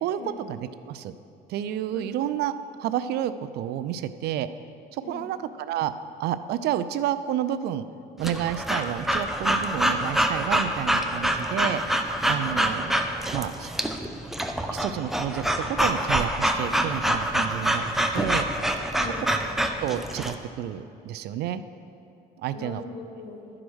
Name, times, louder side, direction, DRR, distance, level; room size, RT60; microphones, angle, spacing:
voice 1, 0.0-0.6 0.9-1.1 1.5-2.5 2.8-4.5 4.9-5.9 6.2-7.8 8.2-11.8 12.3-12.9 13.3-13.7 14.7-18.5 19.8-21.6 22.4-22.8, right 11 dB, 75° right, 12 dB, 0.4 m, -30 dB
voice 2, 5.0-5.3 12.3-12.8 19.0-19.4 22.5-23.5, left 4 dB, 90° left, 3 dB, 1.2 m, -40 dB
Breathing / Dog, 8.2-20.3, right 1 dB, ahead, 0.6 m, -26 dB
11.5 x 4.9 x 6.2 m, 2.7 s
cardioid pair, 110°, 17 cm